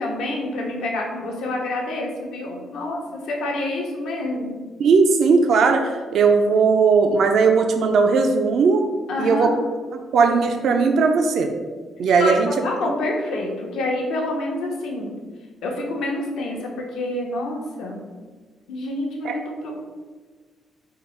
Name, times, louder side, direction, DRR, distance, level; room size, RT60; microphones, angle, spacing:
voice 1, 0.0-4.5 9.1-9.6 12.1-15.1 15.6-18.0 18.7-19.8, left 2 dB, 80° left, -1 dB, 0.7 m, -27 dB
voice 2, 4.8-8.8 9.2-9.5 10.1-11.5 12.0-12.5 12.8-12.9 19.2-19.4, right 5 dB, 70° right, 5 dB, 0.3 m, -18 dB
3.7 x 2.0 x 4.3 m, 1.4 s
cardioid pair, 90°, 0 cm